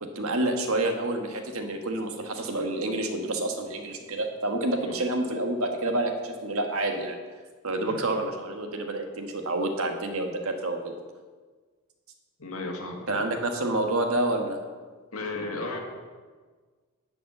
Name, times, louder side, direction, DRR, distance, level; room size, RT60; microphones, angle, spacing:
voice 1, 0.0-7.2 7.6-11.0 13.1-14.6, right 2 dB, 70° right, 4 dB, 1.3 m, -28 dB
voice 2, 12.4-13.3 15.1-15.8, left 2 dB, 75° left, 2 dB, 1.8 m, -34 dB
10.5 x 5.4 x 7.9 m, 1.5 s
head